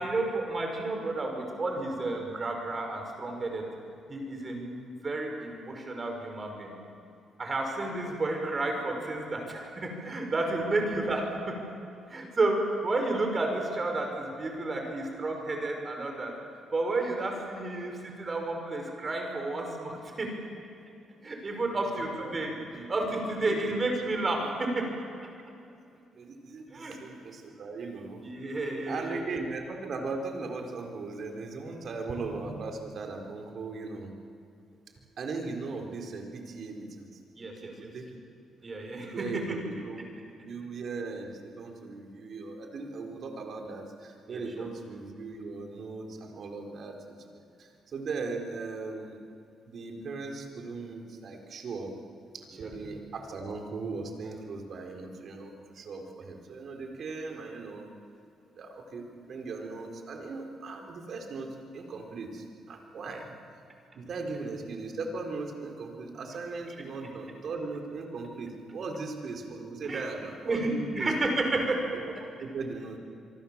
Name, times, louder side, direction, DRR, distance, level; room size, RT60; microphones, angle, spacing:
voice 1, 0.0-3.6 4.1-6.7 7.4-11.6 12.1-16.3 16.7-20.3 21.2-22.5 22.9-24.9 26.7-27.0 28.2-29.4 37.4-37.9 38.6-39.6 44.3-44.7 52.6-52.7 69.8-70.0 70.5-71.8, right 2 dB, 35° right, 3 dB, 5.9 m, -31 dB
voice 2, 21.6-23.8 26.1-28.2 28.9-34.1 35.2-37.1 37.6-38.1 39.1-40.0 40.4-49.2 49.7-51.9 52.3-57.9 58.6-63.2 63.9-71.1 71.9-72.0 72.4-73.0, right 3 dB, 55° right, 2 dB, 4.1 m, -38 dB
25.5 x 24.0 x 7.4 m, 2.5 s
cardioid pair, 90°, 0 cm